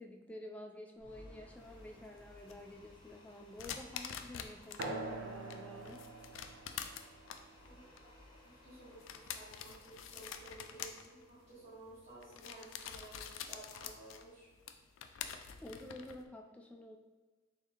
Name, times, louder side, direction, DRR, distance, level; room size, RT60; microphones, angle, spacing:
voice 1, 0.0-6.1 15.6-17.0, left 1 dB, 5° left, 2 dB, 0.3 m, -50 dB
sound 1, 1.0-13.1, left 1 dB, 25° left, 0.9 m, -61 dB
sound 2, 1.6-4.9 5.3-16.3, left 8 dB, 90° left, 0.3 m, -47 dB
sound 3, 4.8-9.8, right 2 dB, 70° right, 0.5 m, -47 dB
voice 2, 7.6-8.1 8.4-14.5, right 1 dB, 45° right, -14 dB, 1.4 m, -54 dB
4.0 x 3.5 x 2.9 m, 1.3 s
head